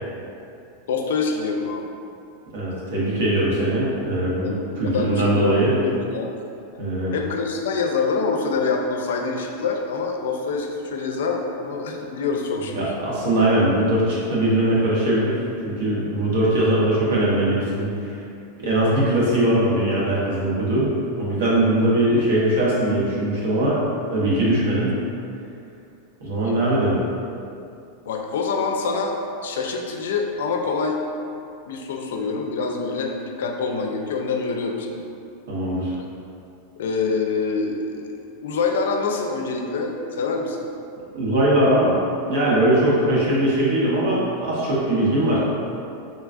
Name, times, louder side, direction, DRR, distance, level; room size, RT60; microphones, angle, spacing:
voice 1, 0.9-1.9 4.4-6.3 7.1-12.9 28.1-31.0 31.7-35.0 36.8-38.2 38.4-40.7, left 4 dB, 85° left, 2 dB, 0.4 m, -26 dB
voice 2, 2.5-5.7 6.8-7.1 12.7-15.4 15.6-17.9 18.6-20.9 21.2-23.8 24.1-25.0 26.2-26.9 35.5-35.9 41.1-42.0 42.3-45.4, right 1 dB, 80° right, -7 dB, 1.0 m, -20 dB
3.7 x 2.3 x 2.5 m, 2.6 s
supercardioid pair, 175°, 0 cm